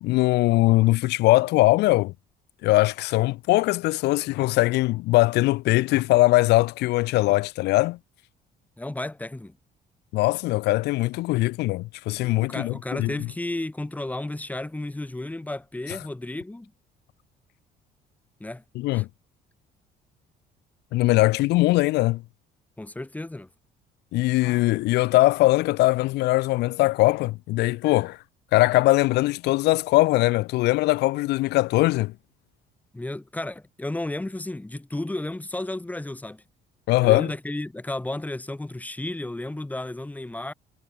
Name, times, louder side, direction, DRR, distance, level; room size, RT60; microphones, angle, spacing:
voice 1, 0.0-2.1 2.6-8.0 10.1-13.1 18.7-19.1 20.9-22.2 24.1-28.2 28.5-32.1 36.9-37.3, left 19 dB, 85° left, 1.3 m, -21 dB
voice 2, 8.8-9.5 12.2-16.7 18.4-18.6 18.9-19.0 22.8-23.5 32.9-36.4 37.0-40.5, left 2 dB, 10° left, 3.7 m, -33 dB
cardioid pair, 110°, 17 cm